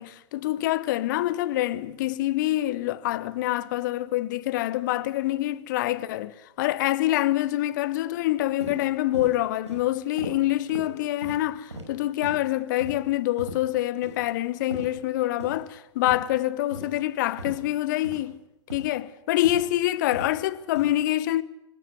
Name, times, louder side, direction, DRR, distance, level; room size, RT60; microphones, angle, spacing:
voice 1, 0.0-18.4 18.7-21.4, left 15 dB, 40° left, 1.0 m, -26 dB
sound 1, 8.6-8.8 9.1-9.3 9.7-9.8 10.2-10.4 10.7-10.9 11.2-11.4 11.7-11.9 12.2-12.4 12.8-13.0 13.4-13.6 14.0-14.2 14.7-14.9 15.4-15.6 16.1-16.3 16.7-16.9 17.4-17.6 18.0-18.2 18.7-18.9 19.4-19.7 20.1-20.3 20.7-20.9, right 1 dB, 80° right, 5.7 m, -38 dB
25.0 x 15.0 x 9.5 m
figure-of-eight pair, 105°, 15 cm